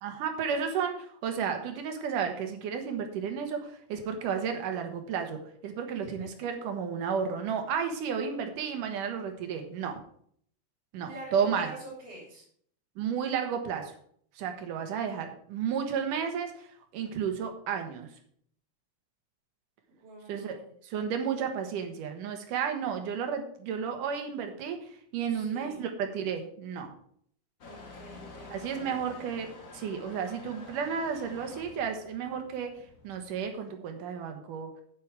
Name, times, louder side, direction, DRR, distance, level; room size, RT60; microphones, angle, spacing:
voice 1, 0.0-10.0 10.9-11.7 13.0-13.9 14.4-16.7 16.9-18.1 20.3-20.6 20.8-24.8 25.1-26.9 28.5-32.7 33.0-34.7, right 7 dB, 90° right, 5 dB, 2.9 m, -32 dB
voice 2, 11.1-12.4 20.0-20.7 25.3-25.8 27.7-29.2, right 2 dB, 75° right, -6 dB, 4.6 m, -46 dB
Motor vehicle (road) / Engine starting / Accelerating revving vroom, 27.6-33.5, left 4 dB, 65° left, 0.8 m, -49 dB
9.0 x 8.4 x 4.7 m, 0.62 s
omnidirectional pair, 3.6 m